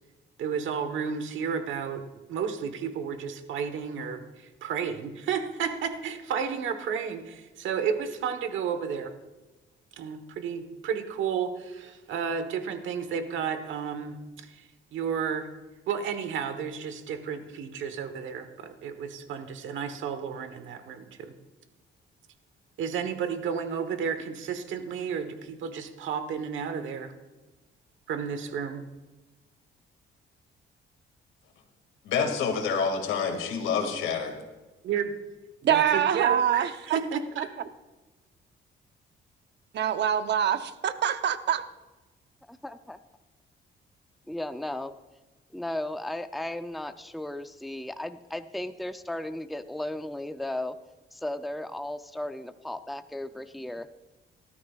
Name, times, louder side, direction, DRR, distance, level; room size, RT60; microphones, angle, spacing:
voice 1, 0.4-2.0 2.3-9.1 10.0-14.6 14.9-15.5 15.9-21.3 22.8-27.1 28.1-28.8 34.8-35.1 35.6-37.5, right 7 dB, 75° right, 8 dB, 1.2 m, -32 dB
voice 2, 32.0-34.4, left 6 dB, 85° left, 4 dB, 2.3 m, -27 dB
voice 3, 35.6-37.0 37.4-37.5 39.7-41.6, right 9 dB, 60° right, 10 dB, 0.8 m, -25 dB
voice 4, 42.5-43.0 44.3-44.9 45.5-50.8 51.1-53.9, left 1 dB, ahead, 9 dB, 0.5 m, -35 dB
18.5 x 13.0 x 2.4 m, 1.1 s
cardioid pair, 90°, 20 cm